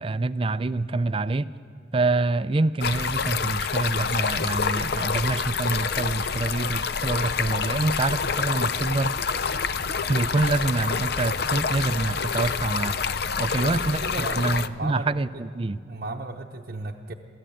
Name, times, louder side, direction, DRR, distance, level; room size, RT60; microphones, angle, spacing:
voice 1, 0.0-1.5 1.9-9.2 10.1-13.0 13.4-14.0 14.4-15.8, right 2 dB, 30° right, 15 dB, 0.4 m, -26 dB
Stream, 2.8-14.7, left 6 dB, 55° left, 0.5 m, -27 dB
voice 2, 13.5-15.4 15.8-17.1, right 2 dB, 50° right, 0 dB, 0.8 m, -35 dB
23.0 x 14.5 x 9.1 m, 2.4 s
head